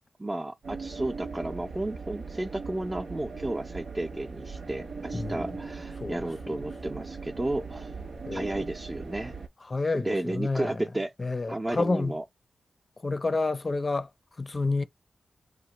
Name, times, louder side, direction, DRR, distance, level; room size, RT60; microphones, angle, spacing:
voice 1, 0.2-7.9 8.3-9.3 9.9-11.1 11.5-12.2, right 1 dB, 25° right, 0.5 m, -33 dB
sound 1, 0.6-9.5, right 4 dB, 90° right, 0.9 m, -39 dB
voice 2, 5.1-5.6 6.0-6.6 8.3-8.7 9.7-10.7 11.2-12.2 13.0-14.1 14.4-14.9, left 3 dB, 40° left, 0.5 m, -29 dB
2.9 x 2.1 x 2.9 m
cardioid pair, 55°, 0 cm